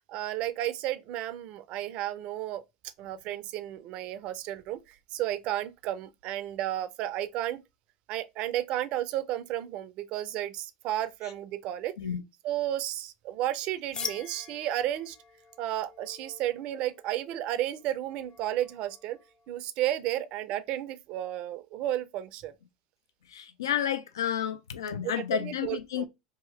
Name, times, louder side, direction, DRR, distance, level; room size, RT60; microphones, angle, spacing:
voice 1, 0.1-2.6 3.0-7.6 8.1-11.9 12.4-15.2 15.6-19.2 19.5-22.5 25.3-26.1, right 13 dB, 55° right, 0.4 m, -33 dB
sound 1, 13.9-19.5, left 6 dB, 35° left, 0.5 m, -44 dB
voice 2, 23.3-26.1, left 9 dB, 85° left, 0.4 m, -31 dB
2.8 x 2.3 x 3.1 m
hypercardioid pair, 85°, 2 cm